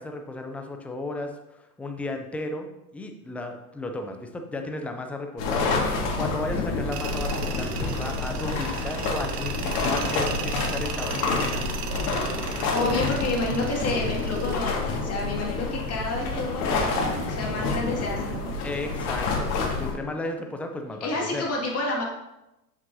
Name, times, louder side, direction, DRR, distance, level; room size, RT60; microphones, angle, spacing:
voice 1, 0.0-2.7 2.9-11.7 18.6-21.5, left 2 dB, 5° left, 4 dB, 0.3 m, -34 dB
sound 1, 5.4-19.9, left 3 dB, 50° left, 2.0 m, -28 dB
Tools, 6.9-14.6, right 8 dB, 85° right, 0.8 m, -36 dB
voice 2, 12.7-18.5 21.0-22.0, left 2 dB, 30° left, -2 dB, 2.1 m, -29 dB
7.4 x 6.1 x 2.7 m, 0.92 s
hypercardioid pair, 100°, 46 cm